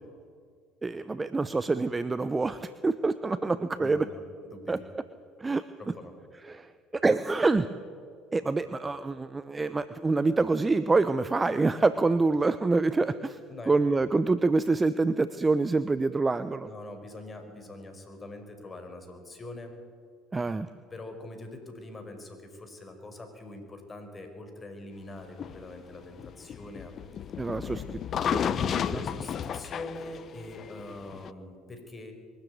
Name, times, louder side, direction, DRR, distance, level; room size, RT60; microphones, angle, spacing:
voice 1, 0.8-4.0 4.7-4.8 5.4-5.6 6.5-7.7 8.3-13.4 13.7-16.7 20.3-20.7 27.4-27.8 28.2-29.0, right 3 dB, 20° right, 13 dB, 0.8 m, -26 dB
voice 2, 3.8-4.8 5.8-6.2 13.5-13.7 16.6-19.7 20.9-26.9 27.6-27.9 28.9-32.1, left 2 dB, 25° left, 6 dB, 5.3 m, -43 dB
sound 1, 25.4-31.3, left 8 dB, 45° left, 0.9 m, -32 dB
23.0 x 13.5 x 9.5 m, 2.1 s
hypercardioid pair, 65°, 0 cm